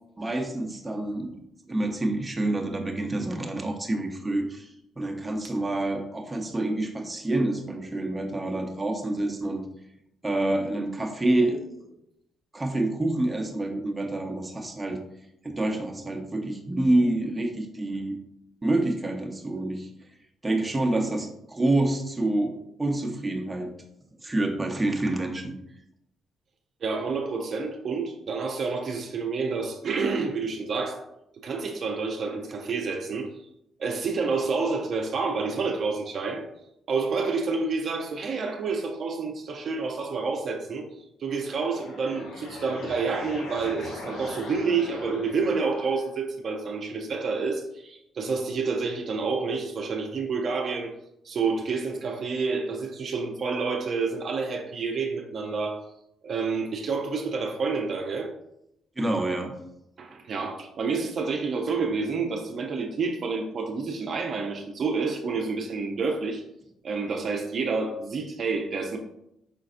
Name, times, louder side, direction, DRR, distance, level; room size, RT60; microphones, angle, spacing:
voice 1, 0.2-1.3 1.7-9.6 10.2-12.0 12.5-15.0 15.4-18.2 18.6-19.9 20.4-23.7 24.2-25.5 59.0-59.5, right 2 dB, 15° right, 1 dB, 0.8 m, -27 dB
voice 2, 26.8-31.0 31.4-33.3 33.8-36.4 36.9-40.9 41.2-50.9 51.2-55.8 56.2-58.3 60.0-66.4 66.8-69.0, right 4 dB, 55° right, 2 dB, 0.5 m, -29 dB
sound 1, 41.3-46.2, left 2 dB, 85° left, 0.9 m, -41 dB
5.0 x 3.9 x 2.5 m, 0.81 s
cardioid pair, 90°, 0 cm